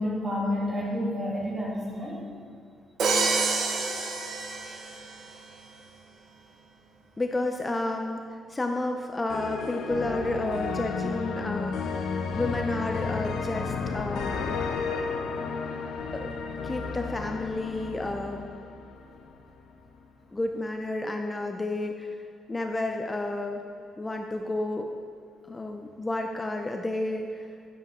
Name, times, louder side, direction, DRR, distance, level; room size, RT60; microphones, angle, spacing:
voice 1, 0.0-2.2, left 1 dB, 35° right, -3 dB, 2.4 m, -29 dB
Crash cymbal, 3.0-5.2, right 4 dB, 65° right, 0.9 m, -27 dB
voice 2, 7.2-14.4 16.1-16.4 16.6-18.5 20.3-23.6 24.0-24.9 25.5-27.5, left 2 dB, 20° left, 4 dB, 0.6 m, -31 dB
sound 1, 9.3-19.4, left 5 dB, 80° left, 0.7 m, -32 dB
9.8 x 7.6 x 3.7 m, 2.3 s
cardioid pair, 90°, 0 cm